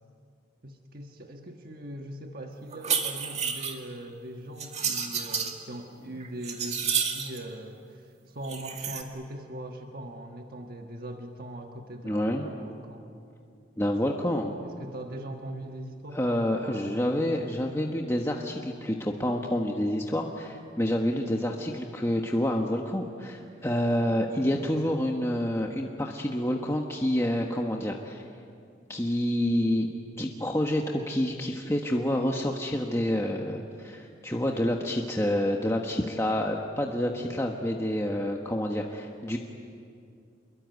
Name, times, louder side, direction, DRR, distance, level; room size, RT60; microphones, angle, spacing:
voice 1, 0.6-13.1 14.6-17.4, right 1 dB, 55° right, 3 dB, 1.4 m, -41 dB
sound 1, 2.7-3.8 4.6-5.5 6.0-7.4 8.4-9.0, right 7 dB, 35° right, 2.1 m, -30 dB
voice 2, 12.0-12.5 13.8-14.5 16.1-28.2 28.9-39.4, left 1 dB, 15° left, 1 dB, 1.3 m, -28 dB
27.5 x 22.5 x 9.4 m, 2.4 s
head